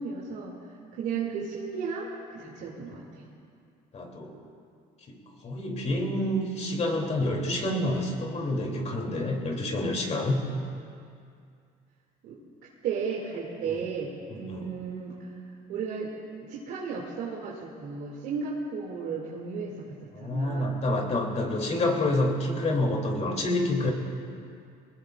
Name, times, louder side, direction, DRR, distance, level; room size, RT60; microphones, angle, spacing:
voice 1, 0.0-3.2 12.2-12.4 12.8-15.3 15.7-16.1 16.5-19.9 20.2-20.8, right 5 dB, 80° right, -5 dB, 2.5 m, -34 dB
voice 2, 2.6-3.0 3.9-4.4 5.1-10.4 13.7-13.8 14.3-14.7 20.1-23.9, left 1 dB, 40° left, 0 dB, 3.0 m, -28 dB
23.5 x 20.0 x 2.5 m, 2.4 s
cardioid pair, 110°, 17 cm